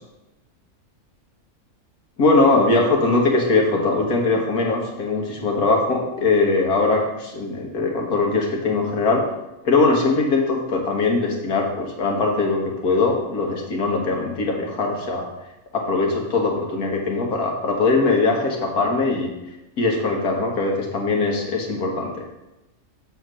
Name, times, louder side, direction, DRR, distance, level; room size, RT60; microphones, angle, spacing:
voice 1, 2.2-9.2 9.6-15.2 15.7-19.3 19.8-22.2, left 3 dB, 85° left, 0 dB, 1.9 m, -21 dB
6.9 x 4.3 x 6.3 m, 0.96 s
omnidirectional pair, 1.5 m